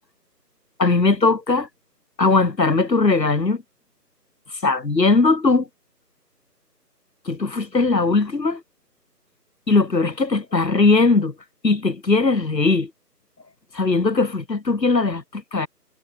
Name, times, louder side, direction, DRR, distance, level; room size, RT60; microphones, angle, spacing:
voice 1, 0.8-1.7 2.2-3.6 4.6-5.7 7.3-8.6 9.7-11.3 11.6-12.9 13.7-15.7, left 3 dB, 90° left, 2.5 m, -19 dB
figure-of-eight pair, 165°, 49 cm